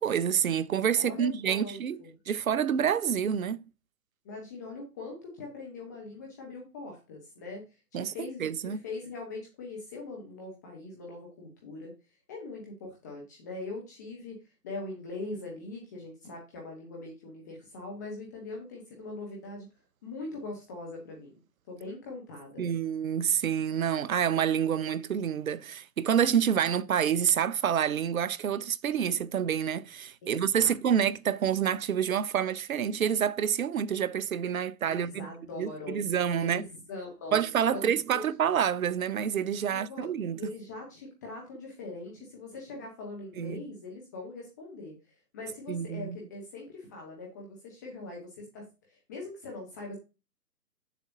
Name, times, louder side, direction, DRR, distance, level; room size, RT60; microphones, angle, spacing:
voice 1, 0.0-2.0 2.3-3.6 7.9-8.1 8.4-8.8 22.6-35.3 35.6-36.6 37.3-40.5 43.4-43.6 45.7-46.2, right 8 dB, 60° right, 0.6 m, -28 dB
voice 2, 1.0-2.1 4.2-11.9 12.3-14.4 14.6-19.7 20.0-21.4 21.7-22.7 30.2-30.7 34.9-36.0 36.4-37.4 37.7-38.2 39.7-40.1 40.4-50.0, left 3 dB, 10° left, 0.8 m, -42 dB
8.3 x 7.0 x 2.6 m
hypercardioid pair, 150°, 49 cm